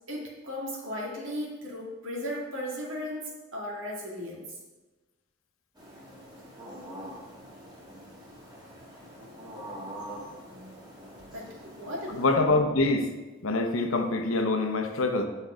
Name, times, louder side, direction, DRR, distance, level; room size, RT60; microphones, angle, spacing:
voice 1, 0.1-4.4 11.3-12.3, left 1 dB, 70° right, -3 dB, 2.3 m, -36 dB
sound 1, 5.7-12.3, right 1 dB, 20° right, 1.8 m, -44 dB
voice 2, 12.1-13.1 13.4-15.2, left 2 dB, 80° left, 5 dB, 1.0 m, -25 dB
8.3 x 5.5 x 5.1 m, 1.2 s
head